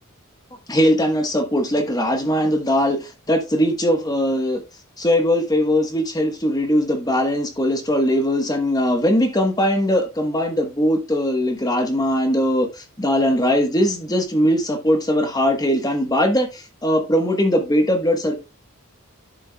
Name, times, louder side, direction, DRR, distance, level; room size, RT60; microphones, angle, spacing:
voice 1, 0.7-4.6 5.0-18.3, equal, 15° left, 1.2 m, -20 dB
11.0 x 7.3 x 2.3 m
head